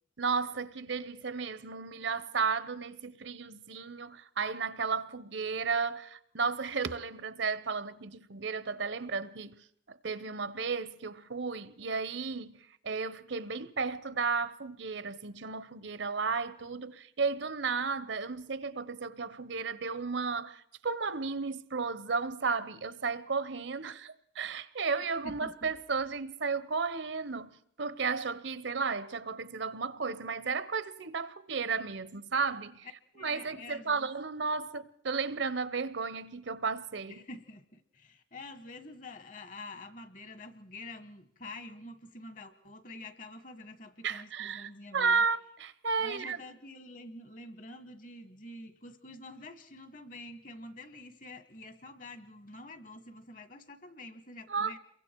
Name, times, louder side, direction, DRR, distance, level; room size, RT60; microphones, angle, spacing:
voice 1, 0.2-9.6 9.9-32.9 33.2-37.2 44.0-46.4 54.5-54.7, right 5 dB, 65° right, 0.9 m, -33 dB
voice 2, 25.2-25.7 33.1-34.1 37.1-45.2 46.0-54.8, left 2 dB, 40° left, 1.5 m, -47 dB
28.0 x 23.0 x 4.6 m
head